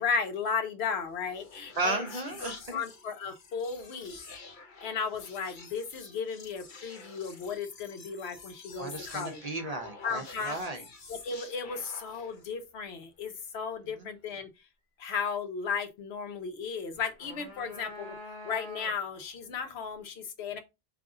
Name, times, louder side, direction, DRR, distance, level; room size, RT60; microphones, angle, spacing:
voice 1, 0.0-2.0 2.7-4.1 4.8-9.4 10.0-10.6 11.1-14.5 15.0-18.1 18.4-20.6, left 5 dB, 80° left, 1.0 m, -35 dB
sound 1, 1.0-12.5, left 4 dB, 55° left, 0.7 m, -49 dB
voice 2, 1.8-2.8 8.8-10.8 14.0-14.1, right 2 dB, 45° right, 0.6 m, -34 dB
sound 2, 16.9-19.3, left 1 dB, 30° left, 1.0 m, -45 dB
3.3 x 2.5 x 3.6 m
omnidirectional pair, 1.1 m